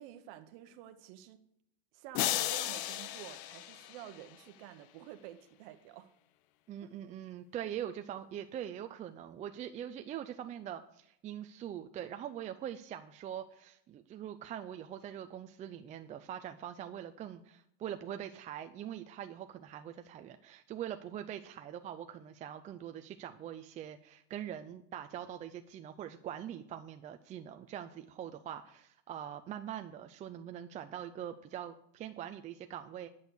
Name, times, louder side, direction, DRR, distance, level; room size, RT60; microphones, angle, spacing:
voice 1, 0.0-1.4 1.9-6.1 6.8-7.0, right 12 dB, 60° right, 1.0 m, -50 dB
sound 1, 2.1-4.5, left 14 dB, 55° left, 0.8 m, -35 dB
voice 2, 6.7-33.1, right 10 dB, 25° right, 0.5 m, -43 dB
10.5 x 6.4 x 7.0 m
supercardioid pair, 140°, 32 cm